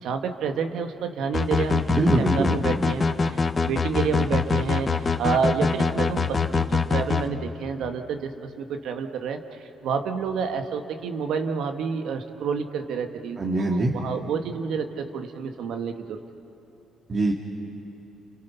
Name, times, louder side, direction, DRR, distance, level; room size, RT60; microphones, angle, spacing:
voice 1, 0.0-1.8 2.2-8.3 8.6-9.4 9.8-16.2, right 6 dB, 80° right, 6 dB, 1.7 m, -29 dB
sound 1, 1.3-7.2, left 4 dB, 30° left, 1.2 m, -23 dB
voice 2, 2.0-2.6 13.4-13.9 17.1-17.3, right 2 dB, 40° right, 0 dB, 2.2 m, -23 dB
30.0 x 29.0 x 5.8 m, 2.9 s
cardioid pair, 90°, 0 cm